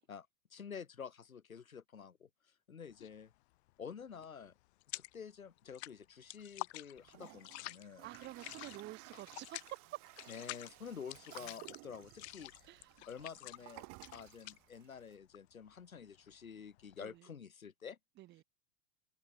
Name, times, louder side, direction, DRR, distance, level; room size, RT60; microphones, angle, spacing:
voice 1, 0.1-2.3 2.7-3.3 3.8-4.5 4.9-8.1 10.3-12.7 13.1-13.8 14.1-18.0, left 7 dB, 80° left, 1.3 m, -49 dB
sound 1, 2.9-3.3 3.5-5.3 5.6-17.1, left 19 dB, 50° left, 1.1 m, -49 dB
Toilet flush, 7.0-15.1, right 24 dB, 40° right, 2.6 m, -56 dB
voice 2, 8.0-9.8 12.6-12.9 17.0-17.3 18.2-18.4, right 15 dB, 25° right, 0.8 m, -49 dB
figure-of-eight pair, 85°, 41 cm